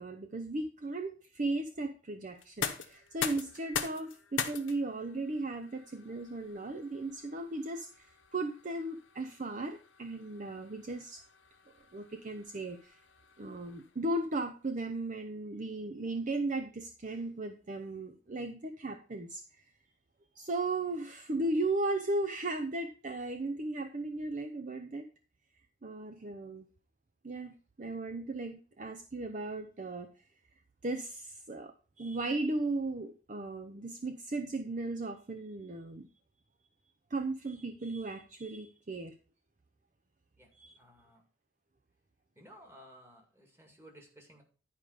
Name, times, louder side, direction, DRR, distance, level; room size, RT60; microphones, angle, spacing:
voice 1, 0.0-11.2 11.9-13.0 13.4-19.6 20.4-25.1 25.8-26.6 27.2-30.2 30.8-36.1 37.1-39.1 40.6-40.8, right 2 dB, 40° right, 7 dB, 0.6 m, -36 dB
sound 1, 2.4-14.2, left 7 dB, 70° left, 1.0 m, -43 dB
voice 2, 40.8-41.2 42.4-44.4, equal, 10° right, 2 dB, 2.0 m, -56 dB
10.5 x 5.0 x 4.9 m, 0.37 s
head